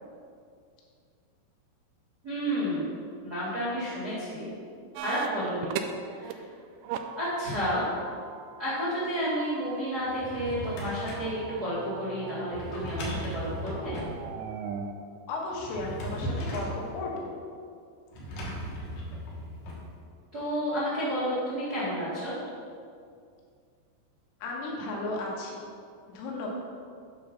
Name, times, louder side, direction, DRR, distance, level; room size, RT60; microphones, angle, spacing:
voice 1, 2.2-2.8 3.2-4.5 4.9-5.7 6.1-6.4 7.1-7.8 8.6-13.9 20.3-22.3, equal, 60° right, -10 dB, 0.9 m, -31 dB
sound 1, 5.0-6.3 6.6-14.9, right 7 dB, 85° right, 2.9 m, -40 dB
Drawer open or close, 10.0-11.4 12.5-14.2 15.5-16.8 18.1-19.8, equal, 65° left, 2.3 m, -36 dB
voice 2, 15.3-17.3 24.4-25.6 26.1-26.5, left 2 dB, 85° left, -3 dB, 4.1 m, -34 dB
10.0 x 3.9 x 5.8 m, 2.3 s
omnidirectional pair, 5.9 m